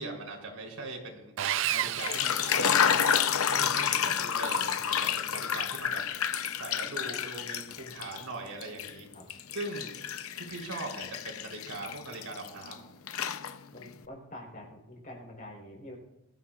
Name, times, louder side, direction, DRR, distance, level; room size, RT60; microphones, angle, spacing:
voice 1, 0.0-2.7 3.0-3.1 3.5-6.2 6.6-9.1 9.5-9.9 10.3-12.8, right 2 dB, 90° right, 1 dB, 3.8 m, -41 dB
Sawing, 1.4-3.3, right 11 dB, 55° right, 0.4 m, -32 dB
sound 1, 1.8-8.2 8.6-12.7 13.1-13.9, left 8 dB, 75° left, 0.7 m, -30 dB
voice 2, 13.7-16.0, left 1 dB, 35° left, 0 dB, 4.0 m, -46 dB
21.5 x 14.0 x 2.5 m, 1.0 s
head